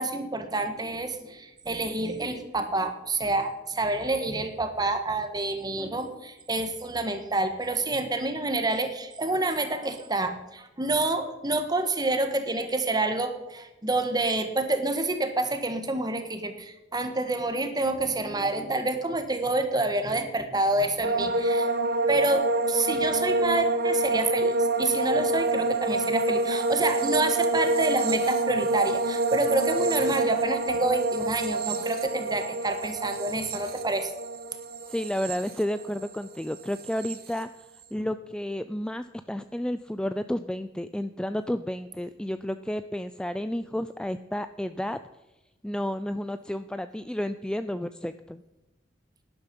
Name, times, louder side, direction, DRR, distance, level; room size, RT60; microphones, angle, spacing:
voice 1, 0.0-21.7 22.1-34.1, right 2 dB, 20° right, 7 dB, 1.5 m, -28 dB
sound 1, 21.0-36.2 36.5-37.2, right 2 dB, 55° right, 1.4 m, -27 dB
voice 2, 34.9-37.7 37.9-45.0 45.6-48.4, left 1 dB, 5° left, 11 dB, 0.3 m, -31 dB
11.5 x 11.0 x 5.3 m, 0.97 s
head